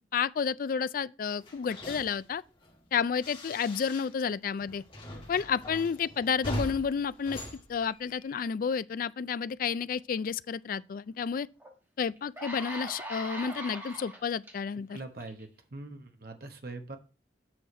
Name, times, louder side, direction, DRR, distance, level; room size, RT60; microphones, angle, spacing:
voice 1, 0.1-2.4 2.9-4.8 5.3-7.4 7.7-11.5 12.0-15.0, left 6 dB, 50° left, 0.3 m, -31 dB
sound 1, 1.4-4.3 4.6-8.5, equal, 30° left, 2.0 m, -41 dB
sound 2, 11.6-11.7 12.2-14.5 15.2-15.4, right 1 dB, 10° right, 1.4 m, -40 dB
voice 2, 14.9-17.0, right 2 dB, 55° right, 1.0 m, -43 dB
7.7 x 6.3 x 4.2 m
head